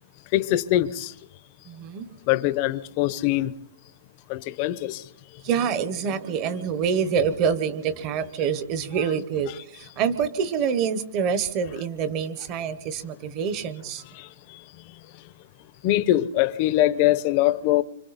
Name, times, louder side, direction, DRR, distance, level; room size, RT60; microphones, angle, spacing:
voice 1, 0.3-1.1 2.3-3.5 4.3-5.0 14.1-14.6 15.8-17.8, left 14 dB, 30° left, 0.7 m, -23 dB
voice 2, 1.7-2.1 5.4-14.0, right 7 dB, 25° right, 1.0 m, -26 dB
26.0 x 25.5 x 4.1 m
hypercardioid pair, 170°, 0 cm